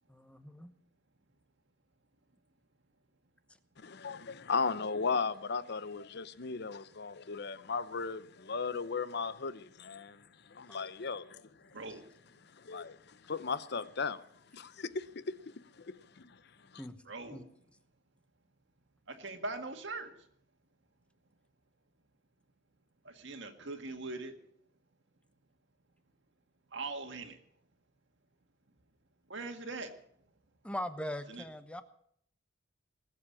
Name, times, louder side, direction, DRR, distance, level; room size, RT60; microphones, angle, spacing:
voice 1, 0.1-0.7 10.7-10.8 16.8-17.0 17.3-17.4 30.6-31.8, left 1 dB, 5° left, 1.0 m, -40 dB
voice 2, 3.8-11.8 12.4-16.8, left 5 dB, 55° left, 0.8 m, -37 dB
voice 3, 17.1-17.4 19.1-20.1 23.0-24.4 26.7-27.4 29.3-30.0 31.3-31.4, right 3 dB, 65° right, 1.8 m, -41 dB
20.0 x 7.7 x 8.5 m
head